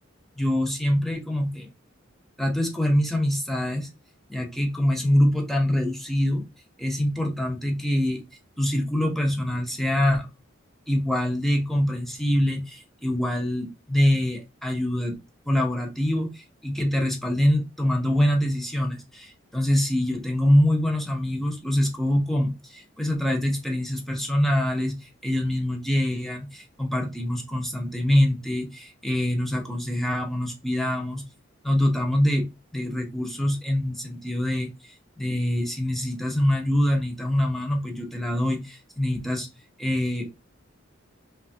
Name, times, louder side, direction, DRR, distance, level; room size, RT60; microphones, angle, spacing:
voice 1, 0.4-1.7 2.4-3.9 4.3-6.5 6.8-8.2 8.6-10.3 10.9-15.2 15.5-31.2 31.6-32.5 32.7-39.5 39.8-40.3, left 1 dB, ahead, 0.6 m, -24 dB
3.2 x 2.2 x 2.5 m
head